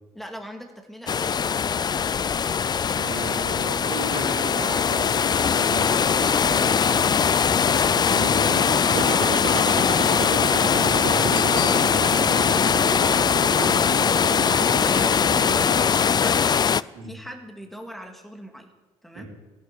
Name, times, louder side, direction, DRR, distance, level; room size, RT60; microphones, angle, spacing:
voice 1, 0.1-2.1 13.5-13.9 14.2-16.6 17.0-18.7 19.0-19.3, equal, ahead, 4 dB, 2.4 m, -41 dB
sound 1, 1.1-16.8, left 7 dB, 35° left, 0.4 m, -21 dB
voice 2, 2.9-12.6 13.5-13.8 14.3-14.5 16.9-17.1 19.1-19.3, right 3 dB, 85° right, -2 dB, 4.6 m, -35 dB
sound 2, 8.9-15.9, right 5 dB, 60° right, 2.4 m, -32 dB
Bicycle bell, 11.3-12.5 17.9-18.0, left 11 dB, 85° left, 2.0 m, -36 dB
14.0 x 11.0 x 8.3 m, 1.2 s
supercardioid pair, 70°, 13 cm